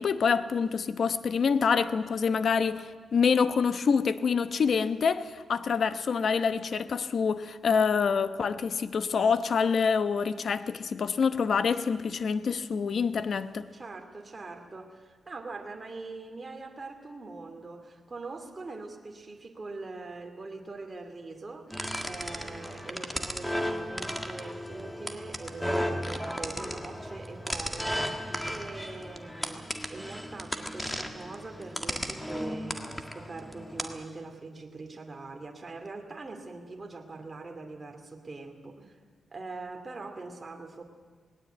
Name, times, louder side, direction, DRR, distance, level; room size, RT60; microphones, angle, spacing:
voice 1, 0.0-13.7, left 6 dB, 60° left, 0.9 m, -26 dB
voice 2, 13.7-39.0 39.3-40.8, right 3 dB, 30° right, 2.6 m, -43 dB
sound 1, 21.7-34.0, equal, 5° left, 1.7 m, -35 dB
19.0 x 17.5 x 9.1 m
cardioid pair, 100°, 0 cm